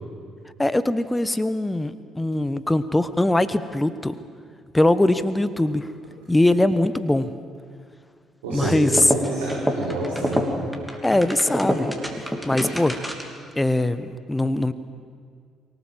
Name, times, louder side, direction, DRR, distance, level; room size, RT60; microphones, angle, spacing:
voice 1, 0.6-4.1 4.7-5.9 6.3-7.3 8.5-9.1 11.0-11.9 12.2-13.0 13.6-14.7, left 1 dB, 10° left, 14 dB, 1.2 m, -21 dB
voice 2, 8.4-10.4, right 3 dB, 75° right, -7 dB, 4.6 m, -29 dB
sound 1, 8.8-13.4, equal, 5° right, 3.1 m, -27 dB
23.5 x 18.5 x 7.5 m, 2.1 s
figure-of-eight pair, 45°, 0 cm